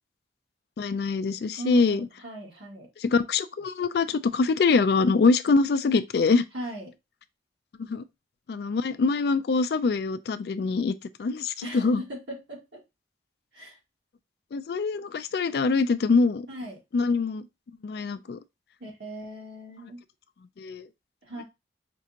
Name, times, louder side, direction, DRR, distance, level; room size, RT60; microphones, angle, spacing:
voice 1, 0.8-2.1 3.0-6.4 7.9-8.0 8.5-12.0 14.5-16.5 16.9-17.5 17.8-18.4 20.6-20.9, left 4 dB, 60° left, 0.3 m, -24 dB
voice 2, 1.6-2.9 6.5-6.9 11.6-12.6 13.5-13.8 16.5-16.8 18.8-20.0 21.2-21.4, right 1 dB, 90° right, 2.0 m, -38 dB
5.2 x 2.5 x 2.8 m
head